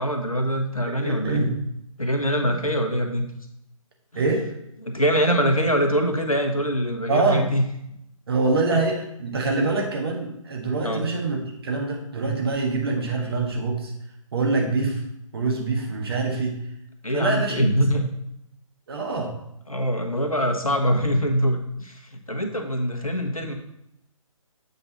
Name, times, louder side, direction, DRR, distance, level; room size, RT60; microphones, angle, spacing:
voice 1, 0.0-1.5 2.0-3.3 4.1-4.2 4.8-7.6 8.7-8.8 10.8-11.1 17.0-18.1 19.7-23.5, equal, 85° left, 4 dB, 1.2 m, -23 dB
voice 2, 0.9-1.6 4.1-4.4 7.1-7.4 8.3-13.9 14.3-15.0 15.3-16.6 17.1-17.7 18.9-19.3, right 3 dB, 45° right, 1 dB, 1.4 m, -25 dB
7.9 x 4.1 x 4.1 m, 0.79 s
figure-of-eight pair, 140°, 18 cm